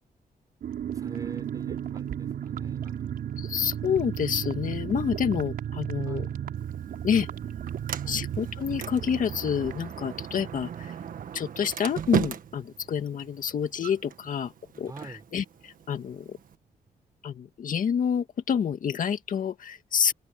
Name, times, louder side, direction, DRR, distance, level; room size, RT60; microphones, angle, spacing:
sound 1, 0.6-13.0 13.2-13.3 13.6-13.9, right 9 dB, 80° right, 5.2 m, -35 dB
voice 1, 0.9-3.3 6.1-6.4 8.0-8.3 14.9-15.2, right 3 dB, 25° right, 5.3 m, -45 dB
voice 2, 3.4-6.3 7.0-7.3 8.1-10.9 11.3-14.5 14.8-16.4 17.2-20.1, left 7 dB, 60° left, 2.2 m, -28 dB
Sliding door, 6.6-16.6, right 8 dB, 65° right, 1.5 m, -37 dB
wide cardioid pair, 125°, 15 cm